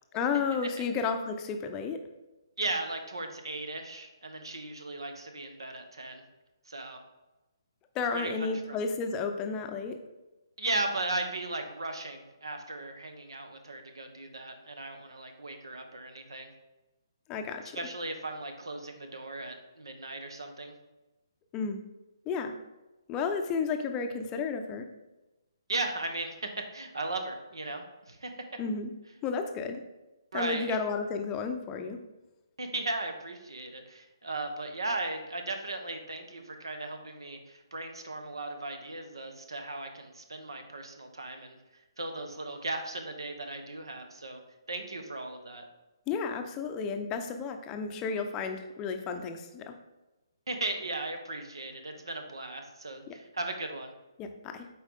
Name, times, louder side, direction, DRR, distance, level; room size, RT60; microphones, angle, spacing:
voice 1, 0.1-2.0 7.9-10.0 17.3-17.8 21.5-21.8 22.3-22.5 23.1-24.9 28.6-28.9 29.2-29.8 30.3-32.0 46.1-49.8 53.1-53.2 54.2-54.7, left 5 dB, 20° left, 6 dB, 0.6 m, -32 dB
voice 2, 2.6-6.2 6.7-7.0 8.1-8.8 10.6-16.5 17.7-20.7 25.7-28.4 30.3-30.8 32.6-41.6 42.0-44.4 44.7-45.6 50.5-53.9, right 2 dB, 75° right, 6 dB, 1.2 m, -37 dB
8.0 x 4.7 x 3.6 m, 1.0 s
figure-of-eight pair, 140°, 2 cm